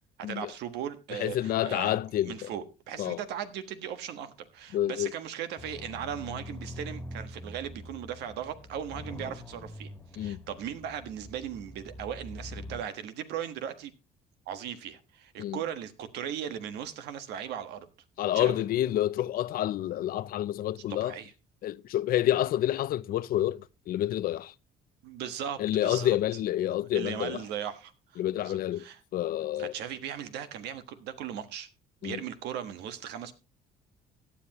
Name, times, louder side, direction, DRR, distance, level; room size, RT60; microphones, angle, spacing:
voice 1, 0.2-2.0 2.2-9.9 10.2-13.9 14.5-17.9 18.3-18.5 20.9-21.3 25.0-26.2 26.9-29.0 29.6-31.7 32.0-33.3, right 9 dB, 85° right, 1.4 m, -38 dB
voice 2, 1.1-2.5 3.0-3.2 4.7-5.1 10.2-10.4 15.4-15.6 18.2-21.2 21.6-24.5 25.6-27.4 28.2-28.8 29.1-29.7 32.0-32.2, left 12 dB, 60° left, 0.5 m, -28 dB
sound 1, 5.6-12.8, left 1 dB, 15° left, 1.7 m, -44 dB
17.0 x 10.0 x 3.0 m
cardioid pair, 110°, 17 cm